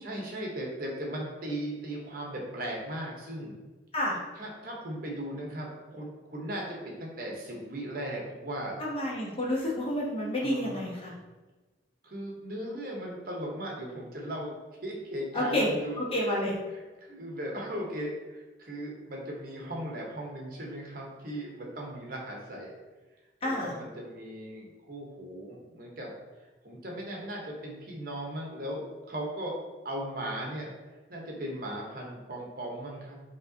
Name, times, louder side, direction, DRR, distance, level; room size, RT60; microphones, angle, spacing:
voice 1, 0.0-3.6 4.4-8.8 10.4-10.9 12.0-14.5 14.8-16.0 16.7-22.7 23.4-26.1 26.6-29.6 29.8-30.7 31.1-33.2, right 1 dB, 55° right, -1 dB, 0.9 m, -37 dB
voice 2, 8.8-11.1 15.3-16.5 23.4-23.7, left 1 dB, 30° left, -4 dB, 1.0 m, -29 dB
5.2 x 2.9 x 2.7 m, 1.2 s
head